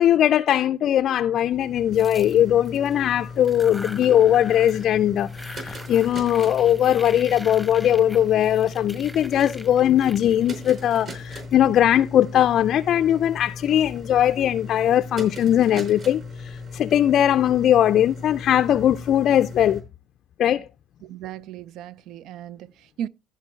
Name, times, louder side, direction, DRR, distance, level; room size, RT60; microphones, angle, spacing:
voice 1, 0.0-19.8 20.4-20.7, left 11 dB, 55° left, 0.4 m, -20 dB
sound 1, 1.3-19.8, left 3 dB, 45° right, 4.4 m, -38 dB
sound 2, 1.9-2.9 3.4-4.9 5.2-11.5, equal, 5° right, 1.0 m, -43 dB
voice 2, 21.0-23.1, right 10 dB, 65° right, 0.4 m, -36 dB
14.5 x 5.5 x 3.1 m
hypercardioid pair, 70°, 0 cm